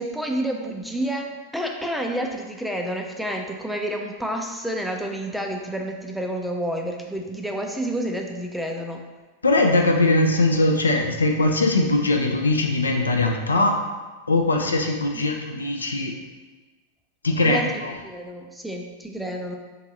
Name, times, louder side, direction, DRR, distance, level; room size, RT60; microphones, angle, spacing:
voice 1, 0.0-9.0 15.1-15.2 17.4-17.7 18.0-19.6, right 1 dB, ahead, 1 dB, 0.3 m, -29 dB
voice 2, 9.4-13.8 14.3-16.2 17.2-17.9, left 2 dB, 75° left, 3 dB, 0.4 m, -21 dB
3.8 x 2.6 x 2.8 m, 1.2 s
figure-of-eight pair, 90°, 0 cm